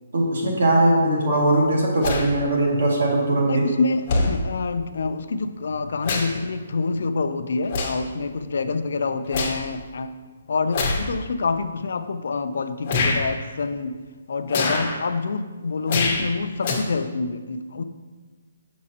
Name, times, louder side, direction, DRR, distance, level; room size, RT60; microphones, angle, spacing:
voice 1, 0.1-3.6, right 1 dB, 70° right, -2 dB, 2.1 m, -20 dB
sound 1, 2.0-2.3 3.3-3.4 4.1-4.3 5.6-6.4 6.8-7.0 7.7-8.1 8.5-9.6 10.7-11.0 11.8-11.9 12.8-13.2 14.5-14.9 15.9-16.3 16.6-16.7, left 3 dB, 35° left, 1.1 m, -25 dB
voice 2, 3.5-10.1 10.5-14.0 14.3-17.8, left 4 dB, 70° left, 10 dB, 0.4 m, -27 dB
7.3 x 6.1 x 2.8 m, 1.4 s
hypercardioid pair, 165°, 0 cm